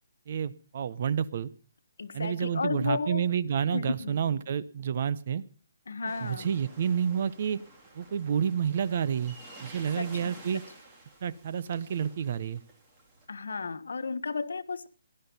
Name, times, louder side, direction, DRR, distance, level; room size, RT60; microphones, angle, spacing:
voice 1, 0.3-1.5 2.1-5.4 6.2-7.6 7.9-10.6 11.2-12.6, right 8 dB, 40° right, 0.8 m, -29 dB
voice 2, 2.0-3.2 3.7-4.4 5.9-6.5 10.0-10.1 13.3-14.9, left 4 dB, 90° left, 1.4 m, -33 dB
sound 1, 6.1-13.3, right 2 dB, 15° right, 2.7 m, -51 dB
19.0 x 11.0 x 5.5 m
hypercardioid pair, 175°, 0 cm